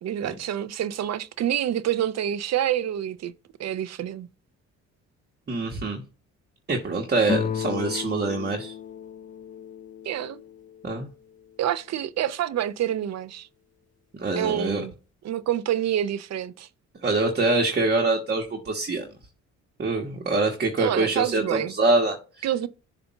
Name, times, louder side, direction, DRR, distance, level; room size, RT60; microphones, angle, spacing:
voice 1, 0.0-3.3 3.6-4.3 10.1-10.4 11.6-13.5 14.3-14.9 15.2-16.7 20.8-21.7 22.4-22.7, right 11 dB, 60° right, 0.6 m, -27 dB
voice 2, 5.5-6.0 6.7-8.7 10.8-11.1 14.2-14.8 17.0-19.1 19.8-22.5, right 3 dB, 35° right, 1.3 m, -25 dB
sound 1, 7.2-10.9, left 7 dB, 25° left, 0.5 m, -33 dB
6.9 x 2.7 x 5.6 m
cardioid pair, 90°, 30 cm